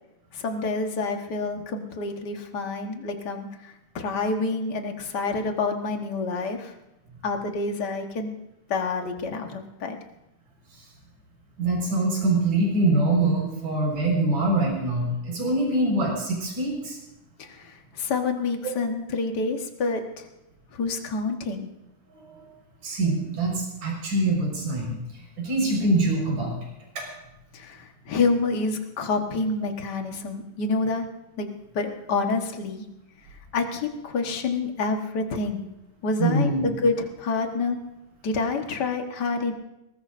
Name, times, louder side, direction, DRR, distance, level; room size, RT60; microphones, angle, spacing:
voice 1, 0.3-3.5 3.9-6.7 7.2-8.3 8.7-10.0 17.4-20.3 20.7-21.7 27.5-31.0 31.4-31.5 31.7-32.8 33.5-35.7 36.0-37.8 38.2-39.5, left 3 dB, 50° left, 3 dB, 1.3 m, -28 dB
voice 2, 11.6-17.0 22.8-24.9 25.4-26.5 36.2-36.6, right 2 dB, 90° right, -1 dB, 6.5 m, -24 dB
23.5 x 19.5 x 2.6 m, 0.92 s
omnidirectional pair, 3.6 m